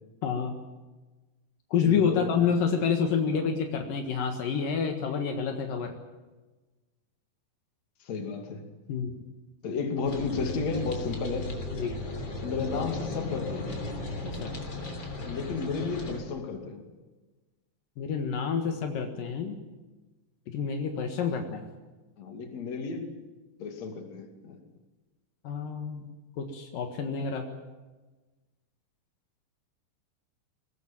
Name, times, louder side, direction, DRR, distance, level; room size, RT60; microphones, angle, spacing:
voice 1, 0.2-0.5 1.7-5.9 8.9-9.2 11.7-12.0 14.4-14.5 18.0-19.6 20.5-21.6 25.4-26.0 26.4-27.4, left 6 dB, 75° left, 4 dB, 3.3 m, -28 dB
voice 2, 1.8-2.4 3.3-3.5 8.0-8.6 9.6-11.5 12.4-13.8 15.2-16.8 22.2-23.2 23.6-24.6, left 4 dB, 55° left, 5 dB, 3.5 m, -33 dB
sound 1, 10.0-16.2, left 2 dB, 35° left, 3.8 m, -36 dB
22.0 x 18.5 x 8.8 m, 1.2 s
omnidirectional pair, 4.0 m